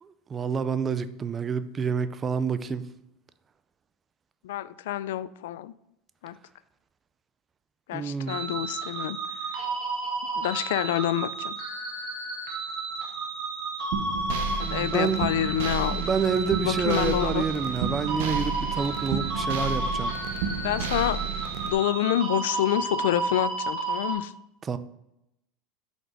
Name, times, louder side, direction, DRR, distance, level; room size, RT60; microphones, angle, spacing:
voice 1, 0.0-2.8 7.9-8.4 14.6-15.2 15.9-20.1 24.6-24.8, right 6 dB, 20° right, 0.4 m, -28 dB
voice 2, 4.4-5.7 6.2-6.4 7.9-9.5 10.3-11.6 14.7-16.1 16.6-17.4 20.6-21.2 21.6-24.3, left 12 dB, 90° left, 0.4 m, -27 dB
sound 1, 8.3-24.1, right 3 dB, 55° right, 2.4 m, -32 dB
sound 2, 13.9-21.7, right 5 dB, 75° right, 0.9 m, -31 dB
6.2 x 5.3 x 6.1 m
supercardioid pair, 155°, 0 cm